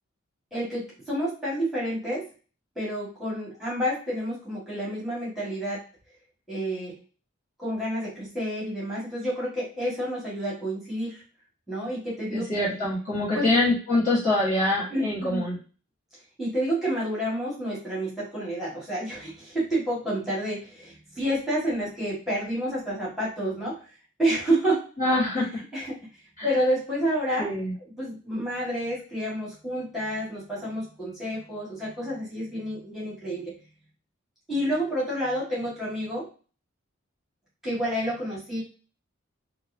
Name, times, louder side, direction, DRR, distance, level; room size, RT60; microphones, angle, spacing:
voice 1, 0.5-2.3 2.7-5.8 6.5-7.0 7.6-11.2 11.7-12.6 13.3-13.4 14.9-15.5 16.4-23.8 24.2-24.8 25.7-26.0 26.4-27.5 28.0-33.5 34.5-36.3 37.6-38.6, right 1 dB, ahead, -8 dB, 1.8 m, -29 dB
voice 2, 12.3-15.6 25.0-25.6 26.4-26.5 27.4-27.7, left 2 dB, 35° left, -8 dB, 1.6 m, -25 dB
4.4 x 2.4 x 2.7 m, 0.36 s
head